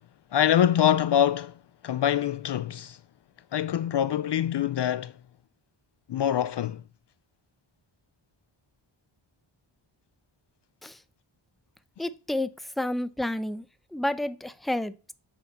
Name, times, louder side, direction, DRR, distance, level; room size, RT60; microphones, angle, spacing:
voice 1, 0.3-1.5 1.8-3.0 3.5-5.1 6.1-6.8, left 10 dB, 60° left, 0.5 m, -24 dB
voice 2, 12.0-12.5 12.8-13.6 13.9-15.1, left 1 dB, ahead, 0.7 m, -30 dB
8.4 x 6.3 x 6.9 m
wide cardioid pair, 70°, 48 cm